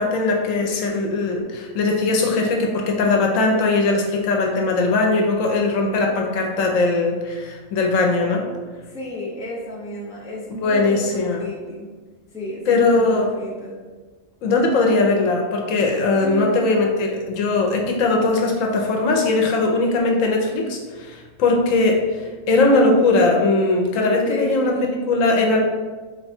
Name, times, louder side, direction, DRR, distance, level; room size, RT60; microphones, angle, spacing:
voice 1, 0.0-8.5 10.6-11.5 12.7-13.3 14.4-24.7 25.1-25.6, left 3 dB, 90° left, 1 dB, 1.0 m, -20 dB
voice 2, 0.6-1.0 8.8-11.9 12.3-13.7 16.1-16.7 24.3-24.9, left 1 dB, 5° right, -5 dB, 0.3 m, -31 dB
3.6 x 2.2 x 4.2 m, 1.4 s
omnidirectional pair, 1.3 m